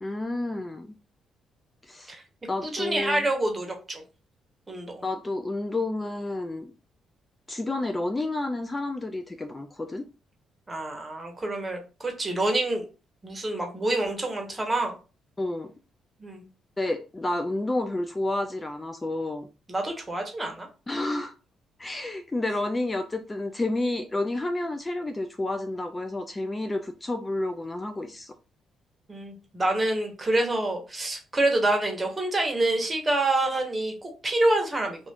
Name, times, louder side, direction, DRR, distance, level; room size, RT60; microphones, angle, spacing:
voice 1, 0.0-0.9 1.8-2.2 2.5-3.3 5.0-6.7 7.5-10.0 15.4-15.7 16.8-19.5 20.9-21.3 21.8-28.3, left 2 dB, 20° left, 7 dB, 0.3 m, -30 dB
voice 2, 2.6-4.0 4.7-5.0 10.7-12.8 13.2-14.9 16.2-16.4 19.7-20.7 29.1-35.1, right 2 dB, 20° right, 3 dB, 1.0 m, -27 dB
2.5 x 2.4 x 3.4 m, 0.32 s
cardioid pair, 90°, 0 cm